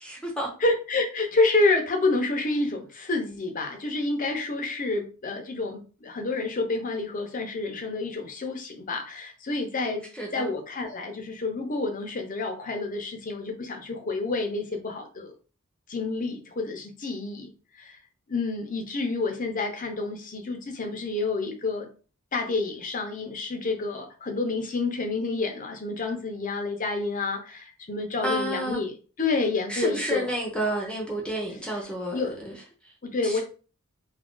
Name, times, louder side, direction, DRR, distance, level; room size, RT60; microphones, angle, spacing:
voice 1, 0.0-0.5 10.1-10.5 28.2-28.8 29.7-32.5 33.2-33.4, right 1 dB, 5° left, 0.7 m, -30 dB
voice 2, 0.6-10.0 10.3-15.3 15.9-17.5 17.8-18.0 18.3-21.9 22.3-28.9 29.2-30.3 32.1-32.4 33.0-33.4, left 3 dB, 40° left, 0.6 m, -28 dB
2.8 x 2.5 x 3.7 m
head